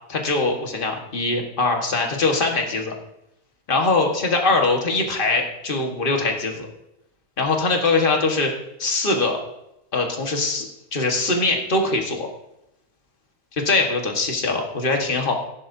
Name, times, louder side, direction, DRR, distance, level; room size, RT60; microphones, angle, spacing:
voice 1, 0.1-2.9 3.7-6.7 7.4-8.5 8.8-9.4 9.9-10.7 10.9-12.3 13.6-15.3, left 3 dB, 35° left, 2 dB, 1.6 m, -22 dB
15.5 x 11.0 x 2.7 m, 0.85 s
omnidirectional pair, 1.5 m